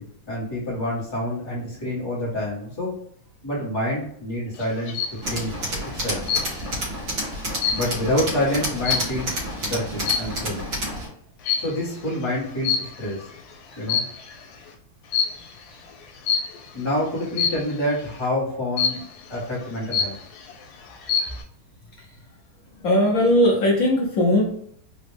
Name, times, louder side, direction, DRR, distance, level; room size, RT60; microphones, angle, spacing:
voice 1, 0.0-3.0 3.4-5.0 5.3-6.2 7.7-10.6 11.6-13.3 13.8-14.1 16.7-19.0 19.3-20.2, left 1 dB, 25° left, -7 dB, 0.6 m, -27 dB
sound 1, 4.6-5.2 6.3-6.8 7.2-9.4 10.0-10.4 11.4-11.8 12.6-13.2 13.7-14.4 15.1-15.5 16.3-16.7 17.4-17.8 18.8-19.2 19.6-19.7 19.9-20.5 20.9-21.4, left 6 dB, 90° left, 1.5 m, -26 dB
Tools, 5.2-11.1, right 1 dB, 50° right, 1.5 m, -30 dB
voice 2, 22.8-24.4, left 1 dB, 70° left, -2 dB, 0.8 m, -19 dB
4.0 x 2.1 x 3.2 m, 0.66 s
omnidirectional pair, 2.3 m